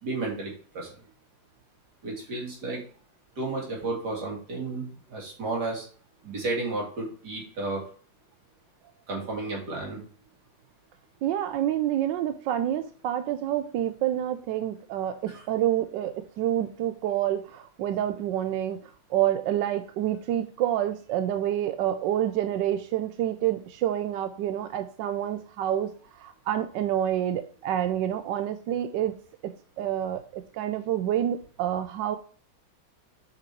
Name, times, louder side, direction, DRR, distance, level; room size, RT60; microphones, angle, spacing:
voice 1, 0.0-0.9 2.0-2.8 3.4-5.9 6.2-7.8 9.1-10.0 15.3-15.4, right 2 dB, 50° right, -2 dB, 3.1 m, -32 dB
voice 2, 11.2-29.1 29.4-32.2, right 11 dB, 75° right, 9 dB, 1.1 m, -28 dB
7.0 x 5.3 x 4.5 m, 0.43 s
omnidirectional pair, 2.2 m